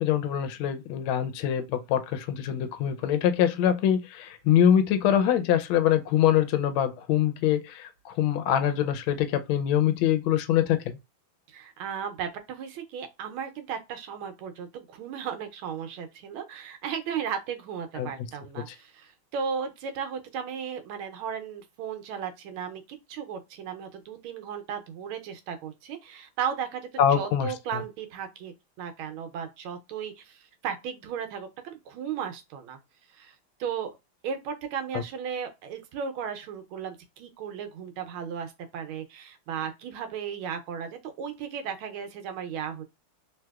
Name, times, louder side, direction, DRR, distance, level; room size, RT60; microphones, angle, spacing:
voice 1, 0.0-11.0 18.0-18.1 18.7-18.8 27.0-27.8 34.9-35.0, left 10 dB, 80° left, 1.4 m, -24 dB
voice 2, 11.5-26.8 27.1-32.8 33.1-33.3 33.6-34.0 34.2-42.8, right 7 dB, 80° right, 1.4 m, -35 dB
3.3 x 2.8 x 2.3 m
omnidirectional pair, 2.3 m